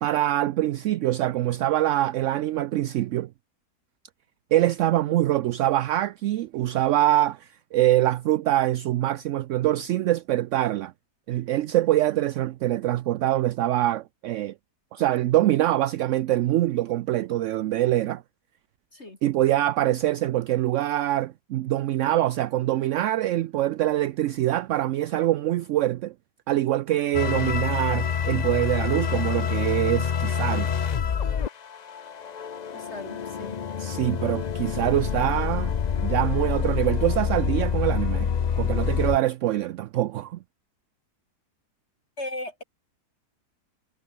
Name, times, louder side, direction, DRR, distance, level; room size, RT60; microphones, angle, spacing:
voice 1, 0.0-3.3 4.5-10.9 11.3-14.5 14.9-18.2 19.2-26.1 26.5-30.7 33.8-40.4, right 14 dB, 70° right, 0.7 m, -24 dB
sound 1, 27.1-39.2, left 7 dB, 60° left, 0.4 m, -27 dB
voice 2, 32.7-33.6 42.2-42.6, left 1 dB, 40° left, 3.9 m, -37 dB
omnidirectional pair, 1.7 m